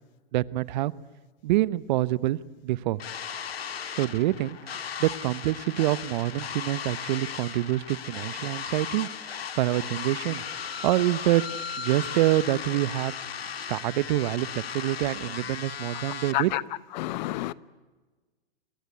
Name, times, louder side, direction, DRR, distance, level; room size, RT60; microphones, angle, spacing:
voice 1, 0.3-0.9 1.4-3.0 3.9-9.1 9.6-10.4 10.8-11.4 11.8-13.1 13.7-16.5, right 16 dB, 50° right, 1.0 m, -26 dB
sound 1, 3.0-16.3, left 7 dB, 85° left, 1.8 m, -36 dB
voice 2, 17.0-17.5, left 17 dB, 50° left, 1.0 m, -28 dB
27.5 x 21.5 x 9.6 m
hypercardioid pair, 125°, 30 cm